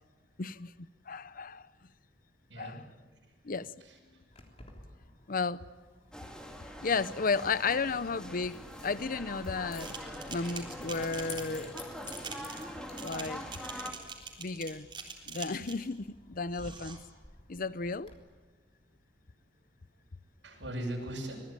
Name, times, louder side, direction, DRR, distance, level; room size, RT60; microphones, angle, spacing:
voice 1, 0.4-0.7 1.1-1.7 2.6-2.8 3.4-3.7 5.3-5.6 6.8-9.9 10.3-11.8 13.0-13.4 14.4-14.9 15.3-17.0 17.5-18.1, left 4 dB, 50° left, 0.7 m, -33 dB
voice 2, 3.8-4.4 20.4-21.4, right 1 dB, 85° right, 7.8 m, -40 dB
Keys jangling, 4.3-18.1, left 4 dB, 35° left, 3.6 m, -54 dB
sound 1, 6.1-13.9, equal, 5° left, 2.7 m, -43 dB
sound 2, 9.8-15.9 16.5-17.0, right 5 dB, 25° right, 3.9 m, -44 dB
25.5 x 20.5 x 9.0 m
head